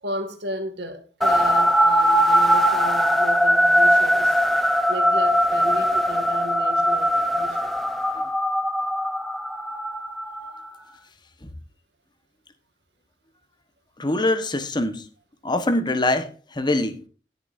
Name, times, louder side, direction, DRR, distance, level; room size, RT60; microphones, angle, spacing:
voice 1, 0.0-4.4 4.9-7.7, right 1 dB, 75° right, 2.3 m, -34 dB
sound 1, 1.2-10.7, equal, ahead, 0.8 m, -20 dB
voice 2, 14.0-15.0 15.4-17.0, left 2 dB, 25° left, 1.3 m, -24 dB
18.0 x 6.9 x 2.7 m
head